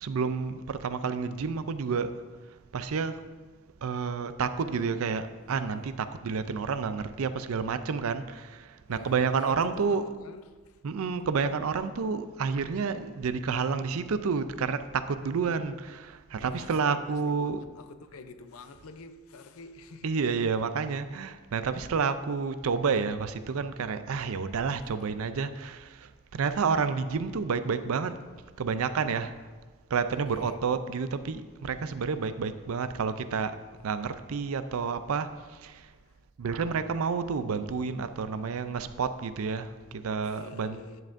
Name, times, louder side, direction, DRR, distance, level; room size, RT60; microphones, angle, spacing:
voice 1, 0.0-2.2 2.7-3.2 3.8-10.0 10.8-17.6 20.0-28.2 28.6-29.4 29.9-33.6 33.8-35.9 36.4-40.8, right 5 dB, 80° right, 0.4 m, -30 dB
voice 2, 8.9-10.8 16.4-20.5 30.3-30.6 35.9-36.1 40.2-41.0, left 3 dB, 85° left, 0.6 m, -48 dB
10.5 x 7.5 x 2.6 m
head